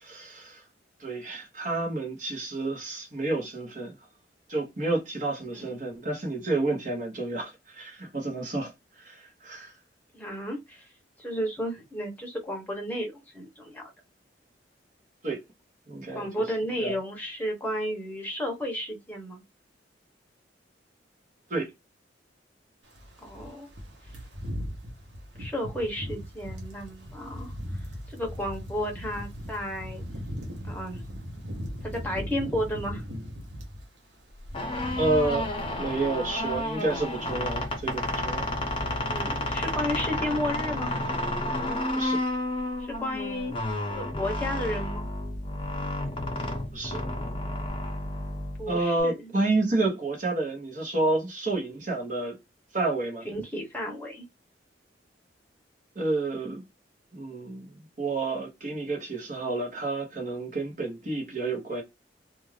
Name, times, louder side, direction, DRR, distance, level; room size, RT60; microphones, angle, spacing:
voice 1, 0.0-0.6 1.0-3.9 4.5-8.7 9.0-9.7 15.2-15.4 15.9-16.3 16.8-17.0 21.5-21.7 34.9-38.5 42.0-42.2 46.7-47.0 48.7-52.4 52.7-53.2 55.9-56.6 57.1-61.8, right 2 dB, 45° right, 1.0 m, -30 dB
voice 2, 10.1-10.9 11.2-13.9 16.1-19.4 23.2-23.7 25.4-27.5 28.1-30.0 30.6-31.0 31.8-33.0 39.1-40.9 42.8-43.5 43.9-45.1 48.6-49.3 53.2-54.2, equal, 10° left, 0.9 m, -33 dB
sound 1, 22.9-33.8 34.2-37.6 37.9-38.1 38.4-39.3 39.5-39.7, equal, 75° right, 0.9 m, -39 dB
sound 2, 34.4-49.0, left 1 dB, 30° left, 0.6 m, -31 dB
2.6 x 2.4 x 3.2 m
head